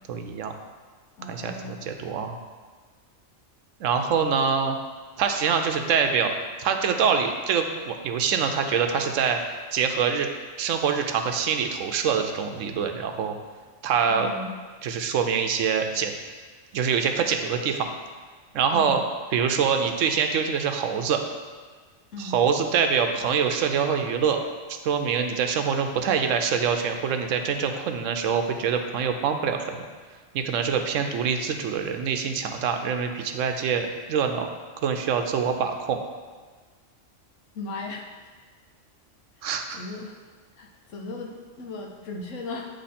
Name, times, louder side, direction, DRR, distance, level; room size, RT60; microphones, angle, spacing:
voice 1, 0.1-0.5 1.3-2.4 3.8-4.8 5.2-6.3 6.6-9.4 9.7-10.3 10.6-13.3 13.8-14.3 14.8-16.1 16.7-17.9 18.5-19.0 19.3-21.2 22.2-24.4 24.7-29.9 30.3-34.5 34.8-36.0 39.4-39.8, right 6 dB, 75° right, 5 dB, 0.9 m, -25 dB
voice 2, 1.2-1.9 14.2-14.5 18.7-19.0 22.1-22.4 37.5-38.0 39.4-40.2 40.6-42.7, left 2 dB, 75° left, 1 dB, 1.2 m, -37 dB
8.7 x 3.1 x 4.2 m, 1.5 s
omnidirectional pair, 1.3 m